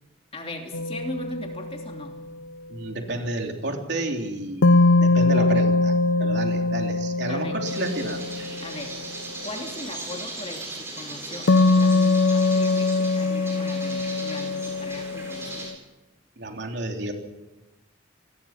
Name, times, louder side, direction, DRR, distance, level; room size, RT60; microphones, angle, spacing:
voice 1, 0.3-2.2 5.2-5.5 7.3-7.6 8.6-9.0 9.4-15.7, left 1 dB, 30° left, 2 dB, 3.0 m, -38 dB
sound 1, 0.7-2.2 4.6-9.0 11.5-15.7, left 3 dB, 75° left, 0.7 m, -22 dB
voice 2, 2.7-8.5 16.4-17.1, right 2 dB, 60° right, 2 dB, 3.5 m, -31 dB
sound 2, 7.6-15.7, right 2 dB, 15° right, 7.8 m, -38 dB
28.0 x 20.5 x 6.0 m, 1.1 s
head